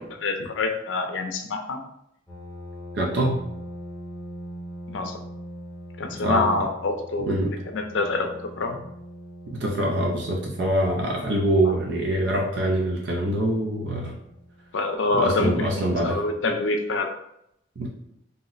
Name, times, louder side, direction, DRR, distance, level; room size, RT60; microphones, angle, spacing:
voice 1, 0.2-1.8 4.9-5.1 6.0-8.3 8.6-8.8 11.6-11.7 14.7-17.1, left 3 dB, 85° left, 5 dB, 0.5 m, -26 dB
sound 1, 2.3-15.6, equal, ahead, 0.5 m, -43 dB
voice 2, 2.9-3.4 6.2-6.6 7.3-7.5 9.5-14.2 15.1-16.2 17.8-17.9, right 1 dB, 65° right, -1 dB, 0.5 m, -24 dB
2.7 x 2.0 x 3.8 m, 0.77 s
head